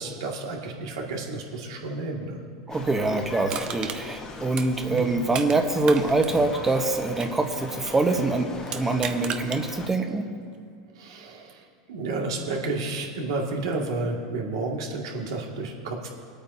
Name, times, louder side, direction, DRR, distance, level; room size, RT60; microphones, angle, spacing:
voice 1, 0.0-2.4 4.9-5.1 11.0-11.6 11.9-16.1, right 3 dB, 80° right, -1 dB, 2.1 m, -31 dB
sound 1, 2.7-9.9, left 4 dB, 25° left, 1.2 m, -39 dB
voice 2, 2.7-10.3, right 2 dB, 15° right, 4 dB, 1.1 m, -24 dB
Crushing, 3.5-5.6 5.8-8.1 8.6-9.6 10.1-10.2, right 8 dB, 40° right, 0.8 m, -35 dB
24.5 x 8.8 x 2.8 m, 2.3 s
supercardioid pair, 115°, 2 cm